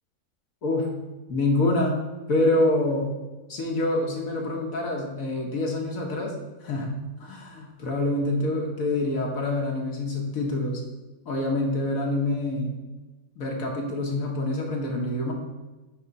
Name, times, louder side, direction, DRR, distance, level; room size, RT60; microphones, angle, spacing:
voice 1, 1.3-2.0 2.3-3.1 3.5-6.3 6.6-6.9 7.2-10.8 11.3-12.8 13.4-15.3, left 2 dB, 65° left, -1 dB, 1.5 m, -26 dB
7.3 x 3.6 x 5.2 m, 1.1 s
omnidirectional pair, 1.6 m